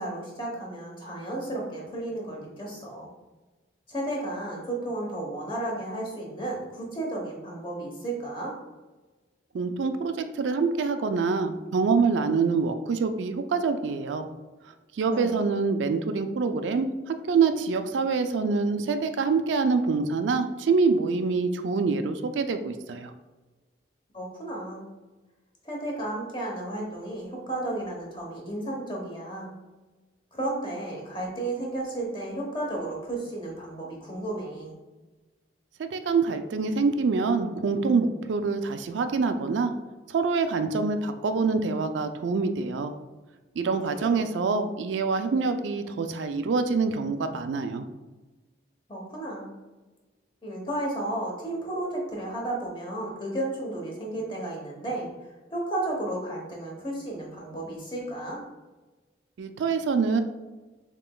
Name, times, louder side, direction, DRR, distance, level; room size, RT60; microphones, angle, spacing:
voice 1, 0.0-3.1 3.9-8.5 15.1-15.5 24.1-24.9 25.6-29.5 30.3-34.7 43.8-44.1 48.9-49.5 50.4-58.4, right 1 dB, 25° left, -1 dB, 1.0 m, -33 dB
voice 2, 9.5-14.3 15.0-23.1 35.8-39.7 40.1-42.9 43.6-47.8 59.4-60.2, right 4 dB, 80° right, 8 dB, 0.4 m, -25 dB
6.8 x 2.9 x 2.3 m, 1.2 s
head